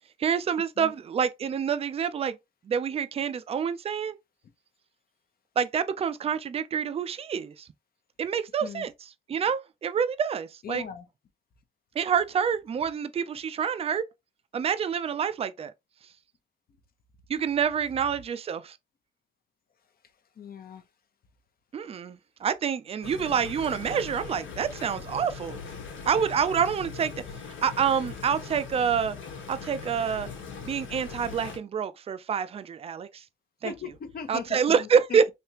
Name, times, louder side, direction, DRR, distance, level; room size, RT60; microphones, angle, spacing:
voice 1, 0.2-2.4 2.6-4.2 5.6-7.7 8.2-8.9 9.3-10.8 12.0-14.0 14.5-15.7 17.3-18.8 21.7-25.6 26.1-27.1 27.6-29.2 29.5-30.3 30.6-33.2 33.6-33.7 34.3-35.3, right 7 dB, 30° right, 0.4 m, -27 dB
voice 2, 10.6-11.1 20.4-20.8 33.6-35.3, left 7 dB, 50° left, 0.7 m, -39 dB
sound 1, 23.0-31.6, left 5 dB, 80° left, 1.3 m, -40 dB
3.3 x 2.8 x 2.8 m
cardioid pair, 90°, 20 cm